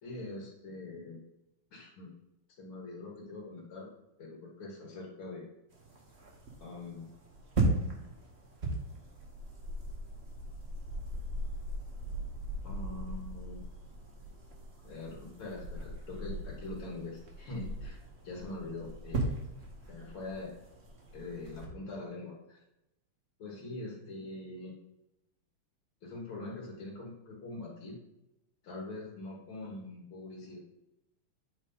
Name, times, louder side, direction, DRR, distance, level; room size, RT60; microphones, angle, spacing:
voice 1, 0.0-1.2 1.7-2.1 2.6-3.9 4.2-5.5 6.6-7.1 12.6-13.6 14.8-18.0 18.2-19.3 19.9-20.5 21.1-22.6 23.4-24.7 26.0-28.0 28.6-30.6, left 2 dB, 75° left, -4 dB, 2.4 m, -43 dB
sound 1, 5.7-21.7, right 2 dB, 40° right, 1.1 m, -38 dB
8.8 x 4.1 x 3.9 m, 0.90 s
omnidirectional pair, 2.4 m